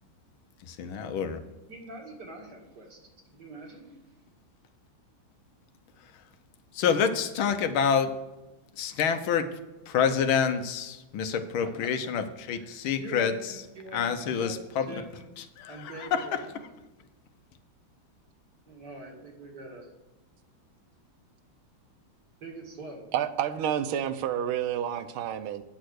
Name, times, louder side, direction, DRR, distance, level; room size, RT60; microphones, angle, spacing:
voice 1, 0.6-1.4 6.0-6.1 6.7-8.1 8.8-9.5 9.9-13.6 13.9-15.0 15.4-16.3, left 7 dB, 80° left, 9 dB, 1.6 m, -28 dB
voice 2, 1.7-3.0 3.3-4.0 11.3-11.7 12.6-14.6 14.8-15.3 15.7-16.8 18.7-19.9 22.4-23.1, right 3 dB, 55° right, 0 dB, 2.5 m, -44 dB
voice 3, 23.1-25.6, right 9 dB, 80° right, 11 dB, 1.5 m, -29 dB
9.2 x 6.5 x 6.3 m, 1.1 s
omnidirectional pair, 2.3 m